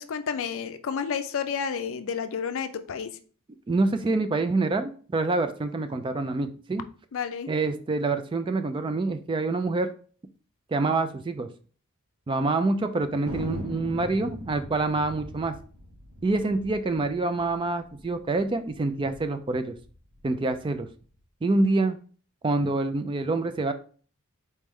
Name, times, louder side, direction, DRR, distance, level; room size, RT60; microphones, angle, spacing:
voice 1, 0.0-3.2 7.1-7.5, left 6 dB, 60° left, 9 dB, 0.4 m, -31 dB
voice 2, 3.7-6.8 7.5-9.9 10.7-11.5 12.3-15.5 16.2-19.8 20.2-20.9 21.4-22.0 22.4-23.7, right 3 dB, 20° right, 9 dB, 0.3 m, -26 dB
Thunder, 13.3-18.1 18.3-18.4 18.7-19.2 19.7-20.9, equal, 85° right, 1.2 m, -40 dB
4.2 x 3.1 x 3.6 m, 0.42 s
head